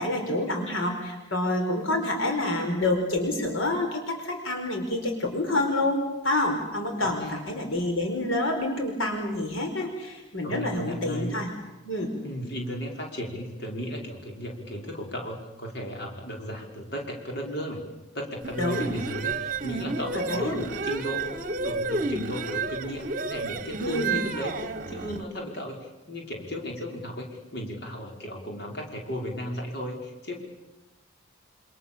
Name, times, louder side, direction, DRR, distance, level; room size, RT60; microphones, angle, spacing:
voice 1, 0.0-11.5 11.8-12.1 18.6-18.8 20.1-20.6 23.8-24.2, left 1 dB, 75° left, 3 dB, 4.9 m, -28 dB
voice 2, 6.9-7.4 10.4-11.4 12.2-17.8 18.1-30.4, equal, 55° left, 0 dB, 5.6 m, -35 dB
sound 1, 18.4-25.2, right 3 dB, 40° right, 1.5 m, -31 dB
28.0 x 27.0 x 7.3 m, 1.1 s
head